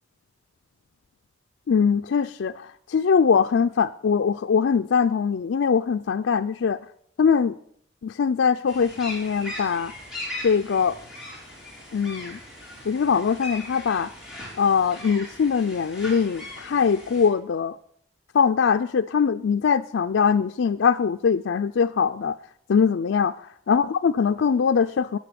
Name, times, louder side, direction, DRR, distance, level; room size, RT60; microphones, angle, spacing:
voice 1, 1.7-6.8 7.2-7.6 8.0-9.9 10.4-11.0 11.9-12.4 12.9-14.1 14.6-17.8 18.3-22.3 22.7-23.3 23.7-25.2, left 6 dB, 85° left, 7 dB, 0.4 m, -22 dB
sound 1, 8.7-17.3, left 1 dB, 5° right, 3.5 m, -39 dB
13.0 x 8.7 x 5.9 m, 0.66 s
head